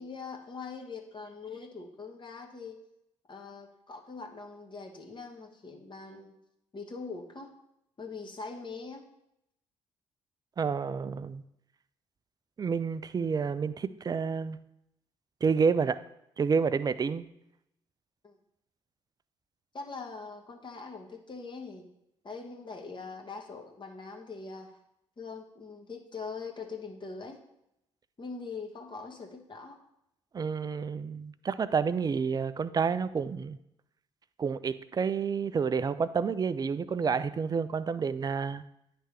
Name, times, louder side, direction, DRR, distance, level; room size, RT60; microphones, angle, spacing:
voice 1, 0.0-2.8 3.3-6.4 6.7-7.5 8.0-9.1 18.2-18.4 19.7-21.9 22.2-24.8 25.2-27.4 28.2-29.8, left 4 dB, 35° left, 2 dB, 1.3 m, -42 dB
voice 2, 10.6-11.4 12.6-14.6 15.4-16.0 16.4-17.3 30.3-33.6 34.4-38.6, right 5 dB, 30° right, 15 dB, 0.4 m, -29 dB
10.0 x 3.4 x 3.3 m, 0.81 s
hypercardioid pair, 50°, 14 cm